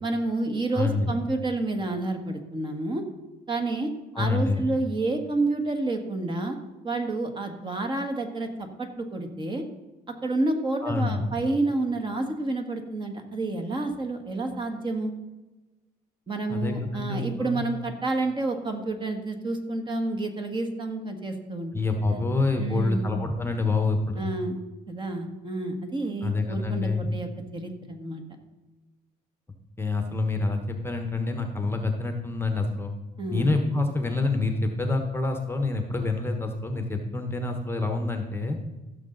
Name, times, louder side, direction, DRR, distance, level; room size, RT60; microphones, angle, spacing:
voice 1, 0.0-3.0 3.5-3.9 4.2-6.6 6.8-9.6 10.2-15.1 16.3-21.7 22.1-22.2 22.6-23.1 24.2-24.6 24.9-28.2 33.2-33.5, right 2 dB, 30° right, 5 dB, 1.6 m, -29 dB
voice 2, 0.7-1.1 4.1-4.6 10.8-11.2 16.5-17.6 21.7-24.3 26.2-27.1 29.8-32.9 33.3-38.6, left 3 dB, 15° left, 5 dB, 1.1 m, -27 dB
15.0 x 6.7 x 3.9 m, 1.1 s
cardioid pair, 110°, 17 cm